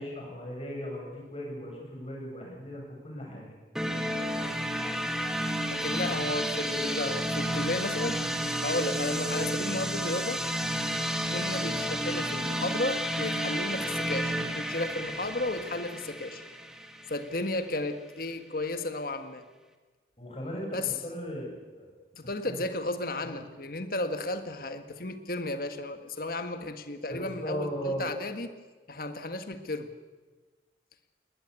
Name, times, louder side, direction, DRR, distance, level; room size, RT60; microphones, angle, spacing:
voice 1, 0.0-3.6 20.2-21.5 21.8-21.9 22.2-22.6 23.2-23.4 27.1-28.1, equal, 35° left, 0 dB, 7.9 m, -37 dB
sound 1, 3.7-17.5, equal, 5° right, 1.7 m, -31 dB
voice 2, 5.7-8.2 8.6-10.4 11.3-16.4 17.1-19.4 20.7-20.9 22.1-28.5 28.9-29.9, left 2 dB, 55° left, 8 dB, 1.7 m, -33 dB
20.0 x 20.0 x 8.3 m, 1.3 s
head